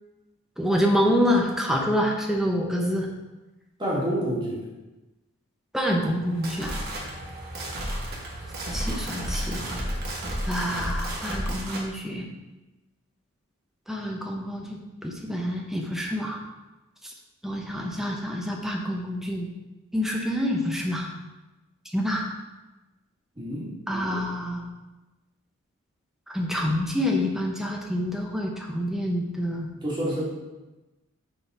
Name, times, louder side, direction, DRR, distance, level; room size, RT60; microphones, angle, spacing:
voice 1, 0.6-3.1 5.7-6.8 8.7-9.7 10.5-12.3 13.9-16.4 17.4-19.5 19.9-21.1 21.9-22.3 23.9-24.7 26.3-29.7, equal, ahead, 0 dB, 0.7 m, -27 dB
voice 2, 3.8-4.6 23.4-23.7 29.8-30.2, right 1 dB, 20° right, -6 dB, 1.7 m, -28 dB
sound 1, 6.2-11.9, equal, 45° right, 1.2 m, -32 dB
6.6 x 3.9 x 4.6 m, 1.1 s
head